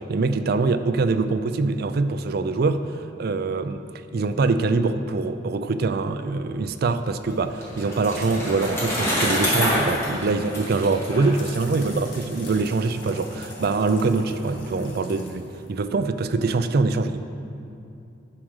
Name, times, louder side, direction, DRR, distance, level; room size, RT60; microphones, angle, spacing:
voice 1, 0.0-2.8 3.2-3.8 4.1-17.2, right 3 dB, 60° right, 10 dB, 0.4 m, -24 dB
Bicycle, 7.0-12.1, equal, 15° left, 2.2 m, -27 dB
sound 1, 10.8-16.4, left 2 dB, 85° left, 1.5 m, -44 dB
9.9 x 4.9 x 6.2 m, 2.6 s
head